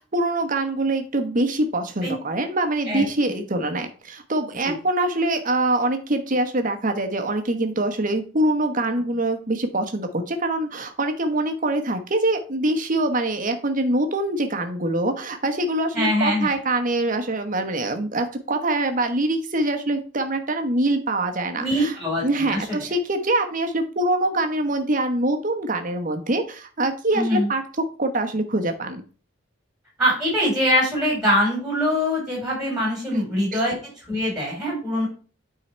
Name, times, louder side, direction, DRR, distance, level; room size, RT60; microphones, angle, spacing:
voice 1, 0.0-22.0 22.2-27.6 28.0-29.0 33.1-33.2 33.5-33.6, right 2 dB, 40° right, 6 dB, 1.0 m, -24 dB
voice 2, 15.9-16.5 21.6-22.6 27.1-27.5 30.0-33.7 34.1-35.1, equal, 5° right, -3 dB, 3.5 m, -23 dB
9.1 x 3.9 x 4.4 m, 0.39 s
head